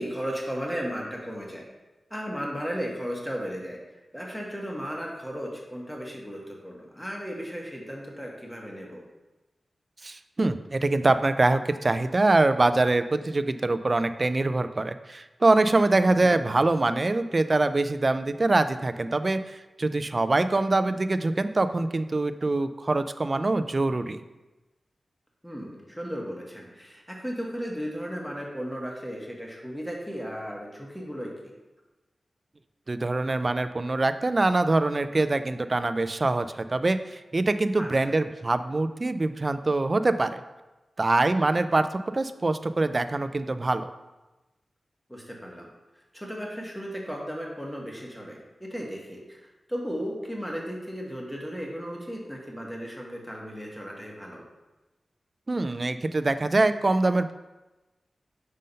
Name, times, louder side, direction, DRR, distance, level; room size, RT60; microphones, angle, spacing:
voice 1, 0.0-1.7 2.1-3.8 4.1-9.0 16.1-16.4 25.4-31.5 37.8-38.1 45.1-45.7 46.1-54.4, equal, 5° left, -1 dB, 1.3 m, -35 dB
voice 2, 10.0-24.2 32.9-40.4 41.0-43.9 55.5-57.3, right 2 dB, 40° right, 11 dB, 0.3 m, -24 dB
5.3 x 3.7 x 5.3 m, 1.1 s
wide cardioid pair, 80°, 0 cm